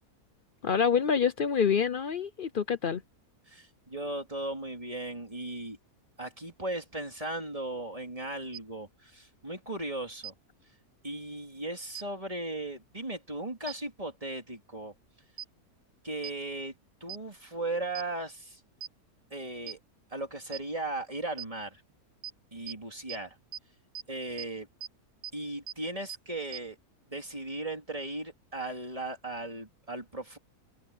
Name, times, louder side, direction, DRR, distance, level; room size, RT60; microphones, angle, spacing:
voice 1, 0.6-3.0, left 6 dB, 55° left, 0.6 m, -26 dB
voice 2, 3.5-5.8 6.2-10.3 11.0-14.9 16.0-16.8 17.0-18.6 19.3-19.8 20.1-21.8 22.5-23.4 24.1-24.7 25.3-26.8 27.1-30.4, right 2 dB, 20° right, 3.8 m, -37 dB
sound 1, 8.5-8.6 10.2-10.3 11.9-12.0 13.7-13.8 15.4-15.5 16.2-16.3 17.1-17.2 17.9-18.0 18.8-18.9 19.7-19.8 20.5-20.6 21.4-21.5 22.2-22.3 22.7-22.8 23.1-23.2 23.5-23.6 23.9-24.0 24.4-24.5 24.8-24.9 25.2-25.3 25.7-25.8 26.1-26.2 26.5-26.6, right 10 dB, 70° right, 1.1 m, -38 dB
omnidirectional pair, 1.6 m